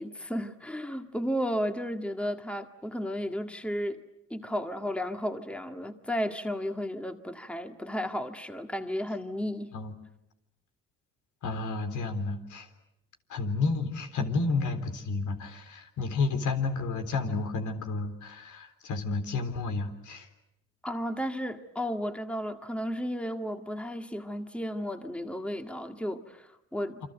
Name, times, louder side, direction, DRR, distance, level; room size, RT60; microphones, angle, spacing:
voice 1, 0.0-4.0 4.3-9.7 20.8-27.0, equal, 5° left, 1.9 m, -33 dB
voice 2, 11.4-12.7 13.3-20.3 27.0-27.1, left 3 dB, 75° left, 3.8 m, -31 dB
29.0 x 25.5 x 8.0 m
cardioid pair, 90°, 30 cm